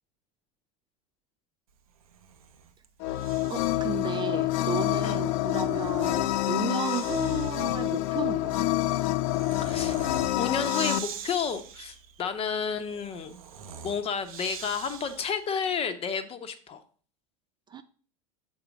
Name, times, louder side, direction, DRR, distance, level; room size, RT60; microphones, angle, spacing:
Breathing, 2.0-3.9 5.2-15.5, right 7 dB, 80° right, 0.8 m, -44 dB
sound 1, 3.0-11.0, left 16 dB, 55° left, 0.5 m, -27 dB
voice 1, 3.5-8.7 17.7-17.8, right 7 dB, 25° right, 10 dB, 0.4 m, -34 dB
voice 2, 9.6-13.4 13.8-16.8, left 6 dB, 35° left, 8 dB, 0.9 m, -31 dB
7.0 x 3.9 x 4.8 m, 0.43 s
hypercardioid pair, 90°, 18 cm